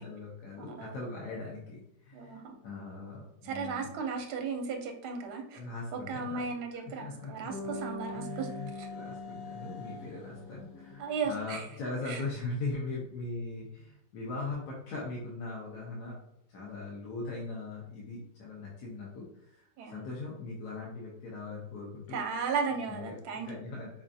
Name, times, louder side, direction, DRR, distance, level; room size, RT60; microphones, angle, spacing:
voice 1, 0.0-3.9 5.5-6.4 6.9-7.5 8.1-16.2 16.5-19.7 19.9-22.2 23.0-23.9, left 3 dB, 70° left, -4 dB, 1.3 m, -40 dB
voice 2, 0.6-1.0 2.1-2.5 3.4-5.6 5.9-8.9 11.0-11.7 12.0-12.2 19.8-20.0 22.1-23.5, right 5 dB, 75° right, 4 dB, 1.2 m, -35 dB
sound 1, 6.7-12.6, left 3 dB, 55° left, 0.9 m, -50 dB
Bass guitar, 7.5-11.6, left 2 dB, 10° left, 0.7 m, -43 dB
5.1 x 2.3 x 2.6 m, 0.75 s
omnidirectional pair, 1.8 m